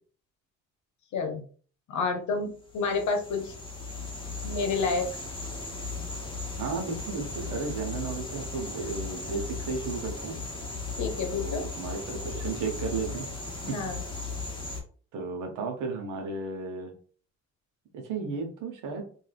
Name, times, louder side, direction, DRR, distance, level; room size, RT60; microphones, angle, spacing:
voice 1, 1.1-1.4 1.9-3.5 4.4-5.1 11.0-11.6 13.6-14.0, left 4 dB, 70° left, 5 dB, 0.9 m, -29 dB
sound 1, 2.6-14.8, left 3 dB, 15° left, 1.1 m, -37 dB
voice 2, 6.6-10.4 11.3-13.3 13.7-13.8 15.1-16.9 17.9-19.0, right 4 dB, 90° right, 3 dB, 0.9 m, -34 dB
2.6 x 2.3 x 3.3 m, 0.43 s
cardioid pair, 90°, 30 cm